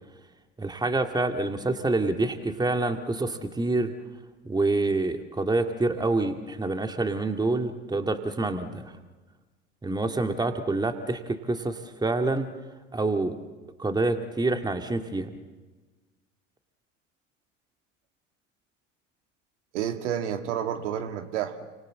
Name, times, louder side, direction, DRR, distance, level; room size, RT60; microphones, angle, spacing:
voice 1, 0.6-3.9 4.4-8.9 9.8-12.5 12.9-13.4 13.8-15.3, right 2 dB, 10° right, 6 dB, 2.2 m, -27 dB
voice 2, 19.7-21.6, right 9 dB, 65° right, 6 dB, 2.4 m, -30 dB
29.5 x 25.0 x 7.7 m, 1.3 s
figure-of-eight pair, 75°, 38 cm